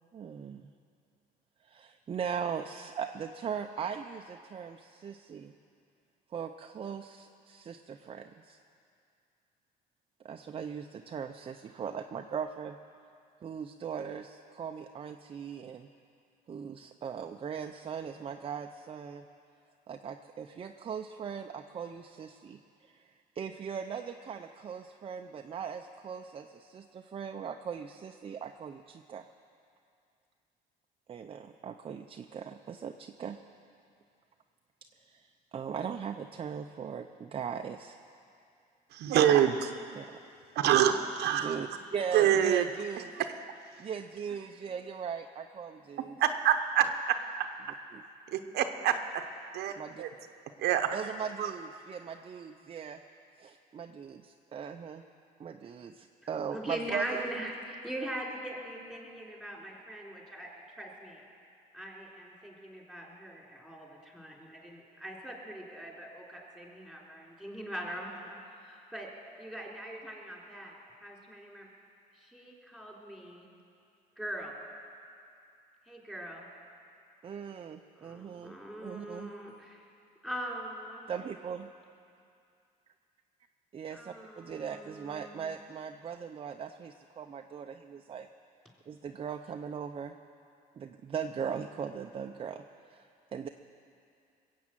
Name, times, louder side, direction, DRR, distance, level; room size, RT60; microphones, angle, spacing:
voice 1, 0.1-0.7 1.6-5.5 6.3-8.6 10.2-12.8 13.4-15.9 16.5-19.3 19.9-29.2 31.1-33.4 34.9-38.0 39.9-40.1 41.3-43.1 43.8-46.2 47.9-48.0 49.8-50.0 50.9-53.0 53.4-55.0 55.4-57.2 77.2-79.3 81.1-81.7 83.7-88.3 88.9-90.1 90.8-93.5, right 7 dB, 35° right, 5 dB, 0.6 m, -39 dB
voice 2, 38.9-39.7 40.6-41.6 42.1-42.6 43.2-43.3 46.2-47.5 48.3-49.2 49.5-50.1 50.6-51.0 51.4-51.5, right 10 dB, 75° right, 7 dB, 0.8 m, -26 dB
voice 3, 56.5-61.2 61.7-69.1 69.4-70.7 71.0-71.7 72.1-73.5 74.2-74.6 75.9-76.5 78.0-79.9 80.2-81.1 83.9-85.5, right 1 dB, 5° left, -3 dB, 3.5 m, -41 dB
21.0 x 8.4 x 7.6 m, 2.5 s
cardioid pair, 110°, 17 cm